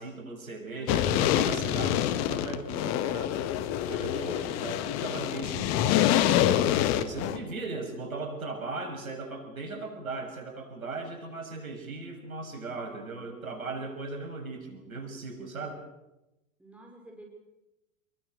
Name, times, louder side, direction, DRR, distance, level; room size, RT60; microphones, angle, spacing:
voice 1, 0.0-3.4 3.8-6.0 7.0-15.8, right 3 dB, 85° right, 5 dB, 6.9 m, -38 dB
voice 2, 0.7-1.3 4.1-4.5 16.6-17.2, right 1 dB, 5° right, 0 dB, 5.3 m, -49 dB
sound 1, 0.9-7.4, left 11 dB, 40° left, 1.8 m, -26 dB
29.5 x 22.0 x 6.6 m, 0.95 s
hypercardioid pair, 110°, 40 cm